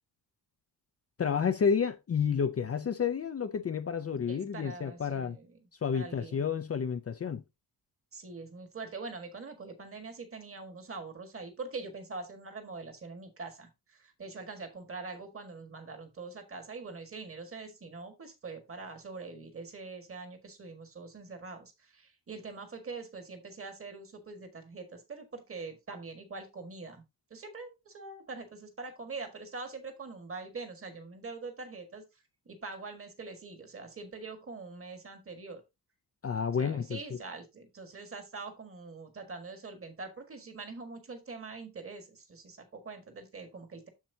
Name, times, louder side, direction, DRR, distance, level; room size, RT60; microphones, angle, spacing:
voice 1, 1.2-5.4 5.8-7.4 36.2-37.0, left 6 dB, 35° left, 0.5 m, -30 dB
voice 2, 4.3-5.7 5.9-6.4 8.1-27.0 27.3-35.6 36.5-43.9, right 4 dB, 35° right, 1.7 m, -44 dB
7.4 x 6.8 x 2.7 m
wide cardioid pair, 135°, 40 cm